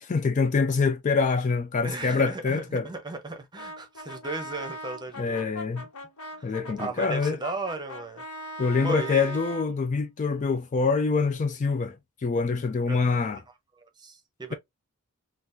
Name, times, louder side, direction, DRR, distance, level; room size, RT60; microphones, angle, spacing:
voice 1, 0.0-2.9 5.2-5.8 6.4-7.4 8.6-12.0 12.2-13.4, left 4 dB, 35° left, 0.3 m, -25 dB
voice 2, 1.8-5.5 6.4-8.5 8.8-9.4 12.9-13.1 13.8-14.5, right 3 dB, 20° right, 0.7 m, -36 dB
Brass instrument, 3.6-9.7, equal, 90° left, 1.2 m, -40 dB
3.8 x 2.4 x 2.5 m
head